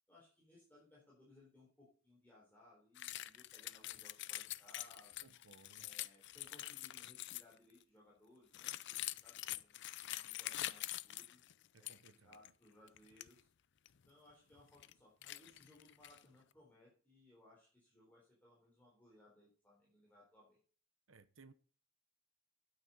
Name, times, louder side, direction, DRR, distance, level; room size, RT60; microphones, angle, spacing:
voice 1, 0.1-5.3 5.8-11.4 11.8-13.5 14.1-20.6, left 1 dB, 10° left, 3.9 m, -65 dB
sound 1, 2.9-7.6 8.5-12.1 12.3-12.5 12.9-13.3 13.8-13.9 14.5-14.9 15.2-16.2, left 15 dB, 60° left, 0.5 m, -45 dB
voice 2, 5.2-5.9 11.7-12.4 21.1-21.5, right 4 dB, 70° right, 1.0 m, -62 dB
9.3 x 8.8 x 5.4 m
head